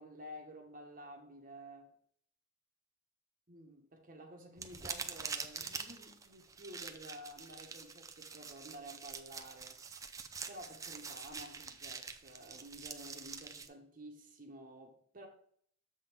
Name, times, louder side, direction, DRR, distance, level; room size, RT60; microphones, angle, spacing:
voice 1, 0.0-1.9 3.5-9.8 10.5-15.3, equal, 45° right, 2 dB, 1.1 m, -52 dB
sound 1, 4.6-13.7, right 5 dB, 15° right, 0.5 m, -45 dB
7.4 x 3.6 x 5.8 m, 0.63 s
head